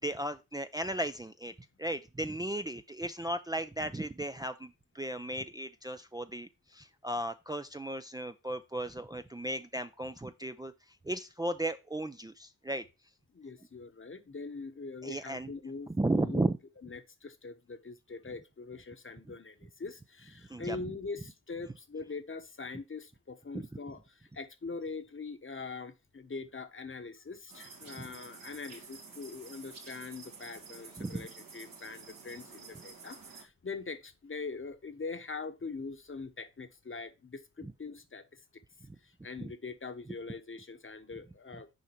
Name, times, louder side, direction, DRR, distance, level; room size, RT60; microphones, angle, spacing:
voice 1, 0.0-1.5 1.8-10.7 11.1-12.8 15.0-15.5 16.0-16.6 20.5-20.8 23.5-23.7 31.0-31.2 37.6-37.7 39.4-39.5, right 1 dB, 10° right, 0.5 m, -35 dB
voice 2, 13.3-16.5 16.8-38.6 39.0-41.7, left 4 dB, 35° left, 1.1 m, -43 dB
sound 1, 27.5-33.4, right 4 dB, 80° right, 2.0 m, -50 dB
6.5 x 4.8 x 4.4 m
cardioid pair, 50°, 33 cm